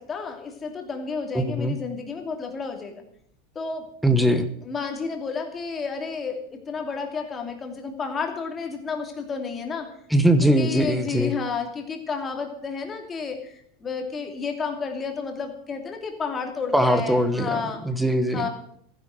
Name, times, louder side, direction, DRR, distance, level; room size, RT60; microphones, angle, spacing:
voice 1, 0.0-3.0 3.5-3.9 4.6-9.9 10.4-17.8 18.3-18.5, left 5 dB, 20° left, 3 dB, 2.8 m, -31 dB
voice 2, 1.3-1.7 4.0-4.5 10.1-11.4 16.7-18.5, equal, ahead, 10 dB, 1.2 m, -21 dB
15.0 x 10.5 x 7.7 m, 0.66 s
supercardioid pair, 155°, 0 cm